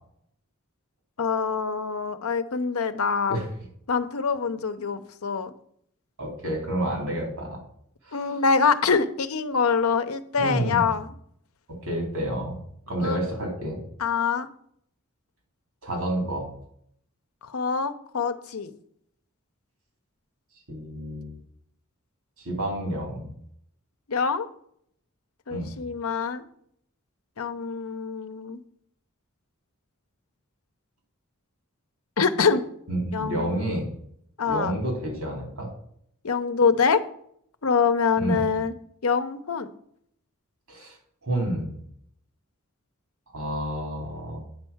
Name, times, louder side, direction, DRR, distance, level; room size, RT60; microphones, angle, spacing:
voice 1, 1.2-3.4 3.9-5.5 8.1-11.1 13.0-13.2 14.0-14.5 17.5-18.7 24.1-24.5 25.5-26.4 27.4-28.6 32.2-32.6 33.1-33.8 34.4-34.7 36.2-37.0 37.6-38.7 39.0-39.7, left 5 dB, 85° left, 10 dB, 0.7 m, -25 dB
voice 2, 6.2-7.6 8.0-8.4 10.4-10.9 11.7-12.6 12.9-13.8 15.8-16.5 20.7-21.3 22.4-23.3 25.5-25.7 32.9-33.9 34.5-35.7 38.2-38.4 40.7-41.0 41.2-41.8 43.3-44.4, right 1 dB, 90° right, 1 dB, 3.8 m, -29 dB
9.3 x 4.6 x 7.1 m, 0.68 s
head